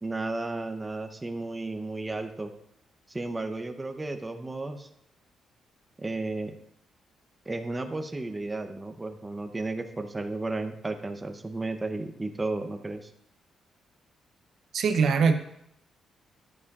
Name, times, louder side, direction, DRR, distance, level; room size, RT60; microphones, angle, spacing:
voice 1, 0.0-2.5 3.1-4.9 6.0-6.6 7.5-13.1, right 2 dB, 15° right, 6 dB, 0.7 m, -33 dB
voice 2, 14.7-15.3, right 5 dB, 65° right, 7 dB, 0.7 m, -22 dB
11.0 x 9.7 x 2.4 m, 0.78 s
cardioid pair, 125°, 0 cm